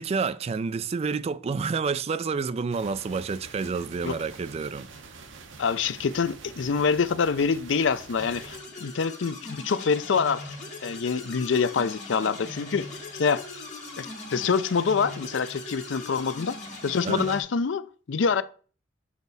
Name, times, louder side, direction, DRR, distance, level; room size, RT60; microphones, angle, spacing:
voice 1, 0.0-4.9 17.0-17.4, right 5 dB, 35° right, 0.3 m, -29 dB
sound 1, 2.7-8.6, right 4 dB, 75° right, 0.9 m, -46 dB
voice 2, 5.6-10.4 10.8-12.9 13.1-13.4 14.0-16.6 16.8-18.4, left 5 dB, 70° left, 0.5 m, -26 dB
sound 2, 8.2-17.4, left 2 dB, 40° left, 2.7 m, -40 dB
7.3 x 4.7 x 4.0 m
head